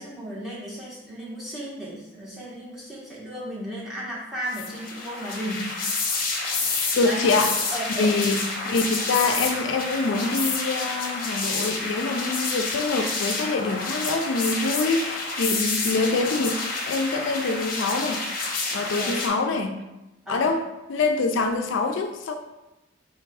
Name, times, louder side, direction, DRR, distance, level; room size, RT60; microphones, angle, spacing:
voice 1, 0.0-5.6 6.7-7.2 7.7-8.2 18.9-19.2 20.2-20.5, equal, ahead, -7 dB, 1.2 m, -35 dB
sound 1, 4.5-19.3, left 3 dB, 45° left, 0.8 m, -29 dB
voice 2, 6.9-7.5 8.0-18.2 18.7-19.8 20.3-22.4, left 3 dB, 75° left, 6 dB, 0.4 m, -25 dB
3.4 x 3.3 x 4.6 m, 0.99 s
head